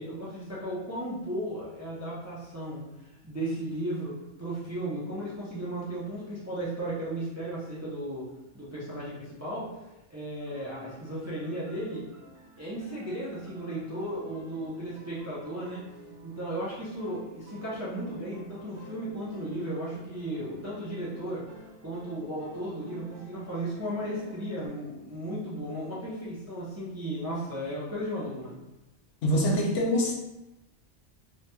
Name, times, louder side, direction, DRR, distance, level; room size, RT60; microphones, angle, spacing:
voice 1, 0.0-2.8 3.2-8.3 8.5-9.7 10.1-12.0 12.6-15.8 16.2-21.4 21.8-28.6, right 1 dB, 25° right, -8 dB, 0.4 m, -35 dB
sound 1, 10.4-24.7, right 1 dB, 50° right, 0.8 m, -52 dB
voice 2, 29.2-30.1, equal, 75° left, -2 dB, 1.0 m, -24 dB
3.0 x 2.7 x 2.2 m, 0.96 s
omnidirectional pair, 1.3 m